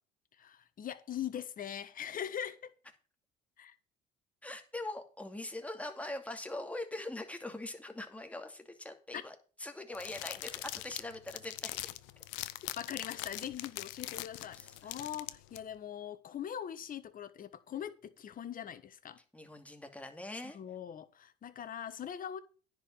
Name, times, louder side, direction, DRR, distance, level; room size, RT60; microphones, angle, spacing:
voice 1, 0.4-2.7 3.6-3.7 9.1-9.2 12.8-19.2 20.5-22.4, left 9 dB, 45° left, 1.4 m, -41 dB
voice 2, 4.4-12.0 14.4-14.9 19.3-20.6, left 2 dB, 5° left, 2.5 m, -42 dB
sound 1, 9.9-15.6, left 17 dB, 75° left, 0.8 m, -42 dB
10.5 x 5.0 x 8.1 m
supercardioid pair, 80°, 20 cm